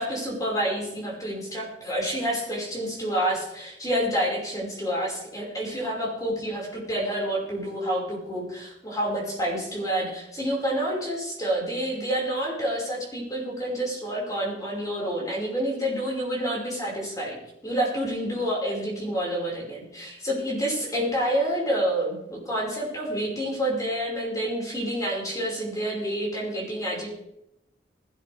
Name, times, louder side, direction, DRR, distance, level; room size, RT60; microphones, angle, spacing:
voice 1, 0.0-17.4 17.6-27.1, right 1 dB, 20° left, -4 dB, 5.4 m, -28 dB
19.5 x 12.5 x 3.5 m, 0.81 s
head